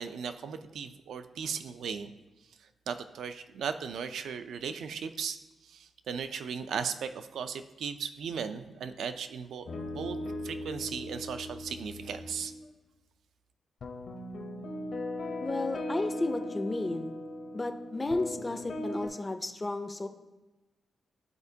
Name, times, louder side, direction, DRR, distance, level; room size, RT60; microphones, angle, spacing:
voice 1, 0.0-2.1 2.9-5.4 5.6-10.2 10.4-12.5, right 6 dB, 80° right, 10 dB, 0.4 m, -37 dB
sound 1, 9.6-12.7 13.8-19.1, left 1 dB, 55° left, 0.7 m, -38 dB
voice 2, 15.4-17.1 17.5-20.1, left 2 dB, 20° left, 8 dB, 0.4 m, -33 dB
10.5 x 4.4 x 2.7 m, 1.1 s
wide cardioid pair, 160°, 0 cm